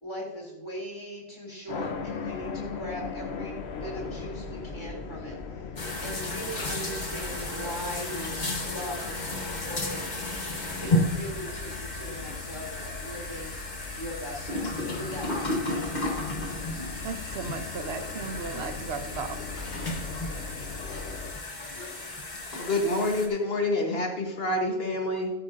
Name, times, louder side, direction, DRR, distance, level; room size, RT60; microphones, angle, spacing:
voice 1, 0.0-5.7 6.0-10.1 10.8-13.5 13.9-16.1, equal, 25° left, 3.1 m, -39 dB
Dark Scape Temple, 1.7-21.3, left 4 dB, 85° left, 1.2 m, -39 dB
sound 1, 5.8-23.3, left 1 dB, 45° left, 1.5 m, -33 dB
voice 2, 17.0-19.4, right 5 dB, 80° right, 1.0 m, -36 dB
voice 3, 22.5-25.3, left 2 dB, 70° left, 1.5 m, -27 dB
13.5 x 9.9 x 2.6 m
omnidirectional pair, 1.1 m